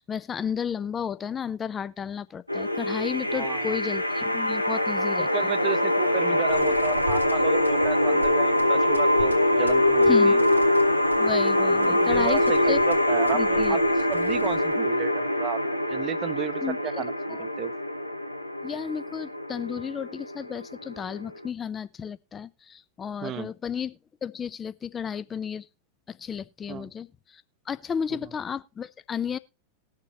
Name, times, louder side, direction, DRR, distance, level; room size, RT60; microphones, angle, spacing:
voice 1, 0.0-5.5 10.1-10.4 11.2-12.4 12.7-12.8 13.3-13.8 16.6-17.0 17.3-17.5 18.6-25.7 26.1-29.4, left 7 dB, 20° left, 0.6 m, -33 dB
sound 1, 2.5-21.4, left 1 dB, 90° left, 0.9 m, -23 dB
voice 2, 3.3-3.8 5.2-10.5 11.6-13.8 14.1-15.6 15.9-17.7 23.2-23.5 26.7-26.9, right 11 dB, 35° right, 0.8 m, -33 dB
sound 2, 6.5-14.9, equal, 85° right, 1.7 m, -43 dB
20.0 x 6.8 x 2.9 m
figure-of-eight pair, 90°, 0 cm